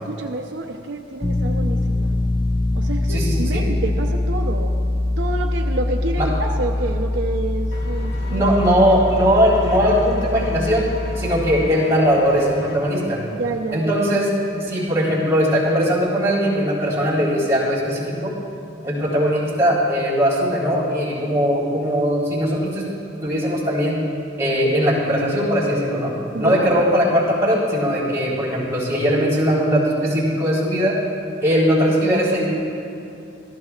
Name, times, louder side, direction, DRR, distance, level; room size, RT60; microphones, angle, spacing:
voice 1, 0.0-2.2 2.7-4.8 5.2-8.5 13.3-14.0 26.3-26.9, right 2 dB, 65° right, 2 dB, 0.7 m, -28 dB
sound 1, 1.2-11.7, left 1 dB, 10° left, 0.3 m, -23 dB
voice 2, 3.1-3.7 6.2-6.3 8.3-10.9 11.2-13.2 13.7-18.3 18.8-22.9 23.2-24.0 24.4-31.0 31.4-32.5, equal, 15° right, -7 dB, 3.8 m, -19 dB
Engine, 7.7-12.7, left 2 dB, 65° left, 1.8 m, -36 dB
25.5 x 14.5 x 2.4 m, 2.6 s
head